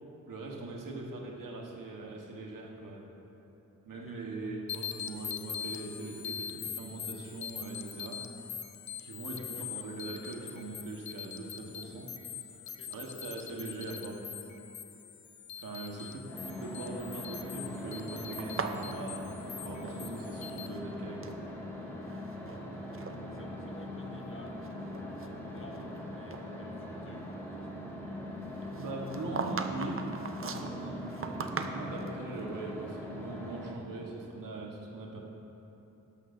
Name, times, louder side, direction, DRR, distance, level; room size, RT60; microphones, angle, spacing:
voice 1, 0.3-3.1 3.8-8.3 9.0-12.1 12.5-12.6 12.9-14.4 15.6-19.3 19.6-21.3 28.8-35.2, right 2 dB, 90° right, -1 dB, 1.4 m, -41 dB
voice 2, 3.9-4.2 9.4-10.1 12.6-12.9 15.6-15.7 15.9-16.1 23.2-27.8, left 1 dB, 40° left, 2 dB, 1.2 m, -54 dB
sound 1, 4.7-20.7, left 8 dB, 60° left, 0.7 m, -43 dB
sound 2, 16.3-33.7, left 1 dB, 10° left, 2.1 m, -41 dB
sound 3, 18.4-20.4 20.6-21.4 22.0-22.6 22.9-23.2 23.8-23.9 24.5-26.0 26.3-26.4 28.7-32.2, right 4 dB, 40° right, 0.6 m, -39 dB
12.5 x 11.5 x 2.7 m, 3.0 s
wide cardioid pair, 90°, 32 cm